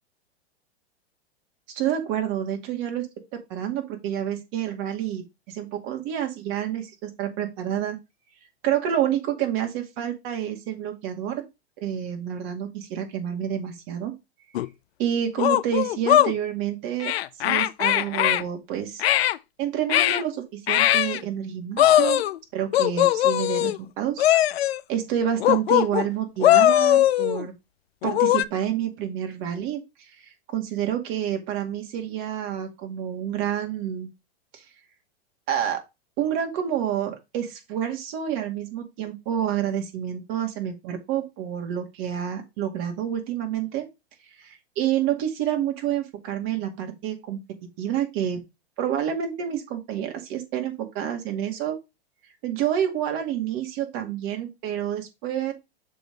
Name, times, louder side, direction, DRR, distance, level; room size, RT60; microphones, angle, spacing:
voice 1, 1.7-3.1 3.3-8.0 8.6-11.4 11.8-14.1 15.0-17.1 17.4-19.0 19.6-22.2 22.5-24.2 24.9-27.5 28.0-34.1 34.5-34.6 35.5-35.8 36.2-43.9 44.4-47.4 47.8-48.4 48.8-51.8 52.4-55.5, right 10 dB, 50° right, 4 dB, 2.2 m, -28 dB
sound 1, 14.5-14.7 15.4-16.3 17.0-18.4 19.0-19.4 19.9-20.2 20.7-21.2 21.8-22.4 22.7-23.8 24.2-24.8 25.4-26.1 26.4-27.4 28.0-28.4, left 13 dB, 80° left, 0.5 m, -20 dB
6.8 x 3.8 x 5.2 m, 0.24 s
hypercardioid pair, 115°, 31 cm